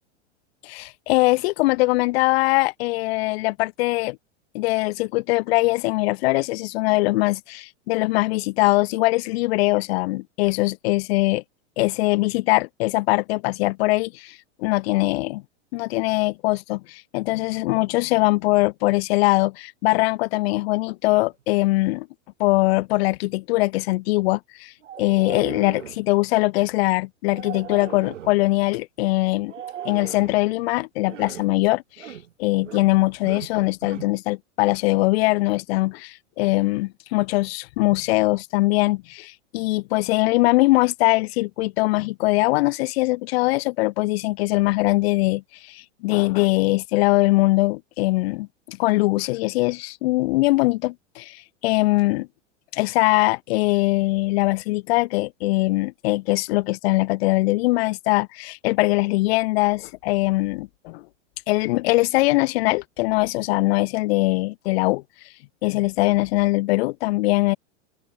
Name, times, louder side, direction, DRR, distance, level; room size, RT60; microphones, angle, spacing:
voice 1, 0.6-4.2 4.5-11.4 11.8-15.4 15.7-22.1 22.4-29.5 29.8-52.3 52.7-61.0 61.5-65.0 65.6-67.6, left 21 dB, 55° left, 1.0 m, -22 dB
sound 1, 24.8-26.1 27.3-28.5 29.5-30.4 31.0-31.5 32.0-32.3 32.6-33.0 33.2-34.2, right 10 dB, 80° right, 3.0 m, -38 dB
open air
hypercardioid pair, 115°, 36 cm